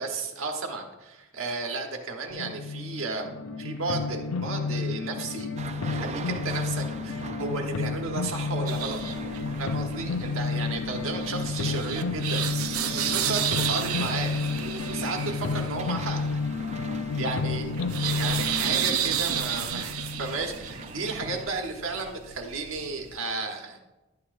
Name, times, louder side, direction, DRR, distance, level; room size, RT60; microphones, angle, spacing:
voice 1, 0.0-5.5 5.8-9.0 9.6-12.4 12.9-16.2 17.2-17.7 18.0-23.8, right 3 dB, 70° right, 3 dB, 1.3 m, -33 dB
sound 1, 2.3-21.4, left 4 dB, 75° left, 0.5 m, -31 dB
sound 2, 5.6-21.6, right 4 dB, 30° right, 0.4 m, -44 dB
sound 3, 8.7-23.2, right 9 dB, 90° right, 0.6 m, -33 dB
11.5 x 8.4 x 2.6 m, 1.1 s
head